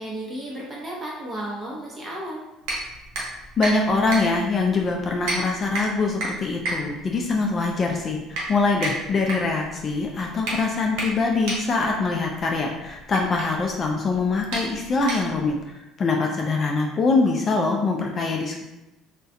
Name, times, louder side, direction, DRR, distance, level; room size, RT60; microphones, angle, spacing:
voice 1, 0.0-2.4, right 1 dB, 25° right, -4 dB, 0.8 m, -33 dB
sound 1, 2.6-15.6, right 1 dB, 80° right, 0.7 m, -33 dB
voice 2, 3.6-18.6, left 3 dB, 35° left, 1 dB, 0.3 m, -23 dB
2.3 x 2.1 x 2.6 m, 0.97 s
cardioid pair, 115°, 0 cm